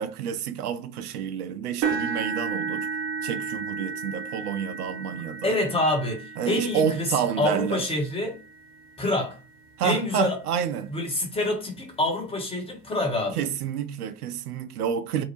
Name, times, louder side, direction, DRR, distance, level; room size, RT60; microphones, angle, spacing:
voice 1, 0.0-2.9 3.2-5.6 6.4-7.9 9.8-10.9 13.4-15.2, right 8 dB, 75° right, 0.6 m, -29 dB
sound 1, 1.8-9.8 10.5-10.7 11.2-11.3 12.6-12.7, right 5 dB, 30° right, 0.5 m, -34 dB
voice 2, 5.4-8.4 9.0-9.4 9.8-10.4 10.9-13.5, left 2 dB, 10° left, 0.7 m, -27 dB
2.6 x 2.0 x 2.9 m
hypercardioid pair, 100°, 46 cm